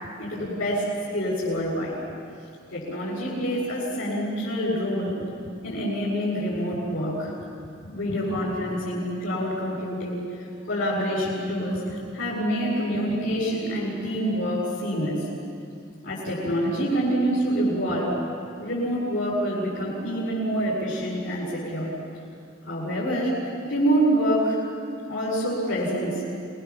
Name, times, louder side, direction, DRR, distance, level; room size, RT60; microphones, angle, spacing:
voice 1, 0.2-1.9 2.7-5.2 5.6-7.3 7.8-15.3 16.0-18.2 18.6-21.9 22.7-23.4 23.6-24.6 25.1-26.2, equal, 80° left, -9 dB, 7.9 m, -26 dB
29.5 x 22.5 x 7.5 m, 2.4 s
head